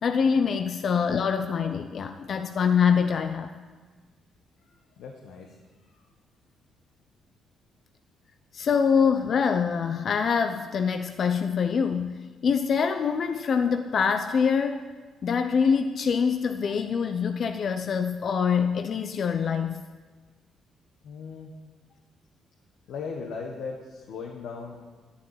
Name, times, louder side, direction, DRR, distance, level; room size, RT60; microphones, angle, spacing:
voice 1, 0.0-3.5 8.5-14.9 15.2-19.8, left 6 dB, 55° left, 7 dB, 0.6 m, -25 dB
voice 2, 4.7-5.6 21.0-21.5 22.9-24.8, left 5 dB, 80° left, 0 dB, 1.4 m, -38 dB
11.5 x 7.2 x 8.9 m, 1.4 s
cardioid pair, 90°, 0 cm